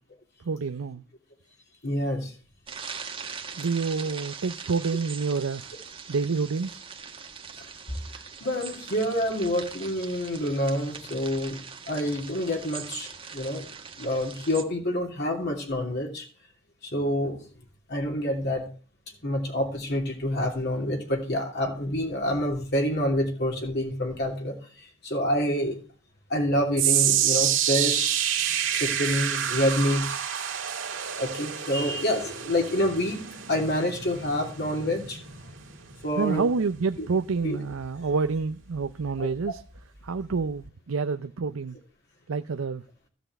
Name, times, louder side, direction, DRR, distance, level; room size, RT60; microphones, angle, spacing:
voice 1, 0.4-1.0 3.6-5.7 6.1-6.8 36.2-39.6 40.0-41.8 42.3-42.8, right 4 dB, 85° right, 0.6 m, -28 dB
voice 2, 1.8-2.3 7.6-7.7 8.4-11.6 11.9-13.7 14.0-16.3 16.8-17.4 17.9-18.7 19.2-25.8 26.3-28.2 28.7-30.2 31.2-33.2 33.5-35.2 36.0-36.4 37.0-37.1 37.4-37.6 39.2-39.3, left 1 dB, 55° left, 2.9 m, -27 dB
sound 1, 2.7-14.6, right 6 dB, 25° right, 1.5 m, -41 dB
sound 2, 26.8-39.1 39.4-39.8 40.4-40.5, right 10 dB, 65° right, 2.1 m, -29 dB
14.5 x 6.1 x 7.9 m
head